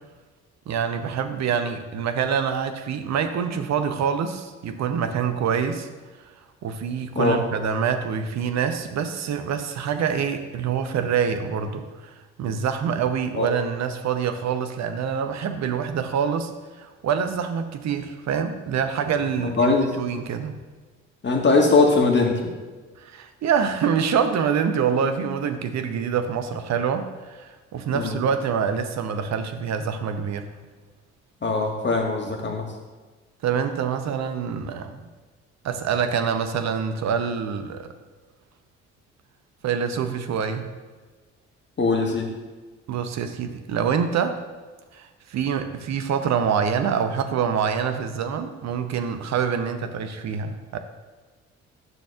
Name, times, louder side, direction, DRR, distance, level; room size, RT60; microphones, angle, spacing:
voice 1, 0.7-5.9 6.6-16.5 16.8-20.5 23.0-30.5 33.4-35.1 35.6-37.9 39.6-40.7 42.9-44.4 44.9-50.8, right 7 dB, 45° right, 8 dB, 0.8 m, -26 dB
voice 2, 19.4-19.9 21.2-22.4 27.9-28.1 31.4-32.7 41.8-42.3, left 3 dB, 30° left, 2 dB, 1.6 m, -21 dB
10.5 x 6.2 x 2.4 m, 1.3 s
figure-of-eight pair, 45°, 37 cm